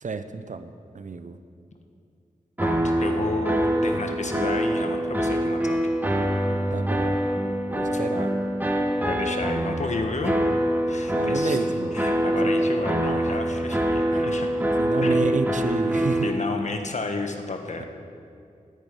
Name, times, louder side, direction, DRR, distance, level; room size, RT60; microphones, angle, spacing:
voice 1, 0.0-1.4 6.7-7.2 7.7-8.3 11.1-12.0 14.1-14.3 14.8-16.3, right 4 dB, 60° right, 10 dB, 0.8 m, -30 dB
voice 2, 2.6-5.8 7.9-8.0 9.1-10.4 10.9-14.5 15.0-15.4 16.2-17.9, left 3 dB, 55° left, 4 dB, 1.5 m, -32 dB
sound 1, 2.6-16.3, right 1 dB, 10° right, 1.3 m, -24 dB
10.5 x 10.5 x 9.2 m, 2.4 s
wide cardioid pair, 75°, 14 cm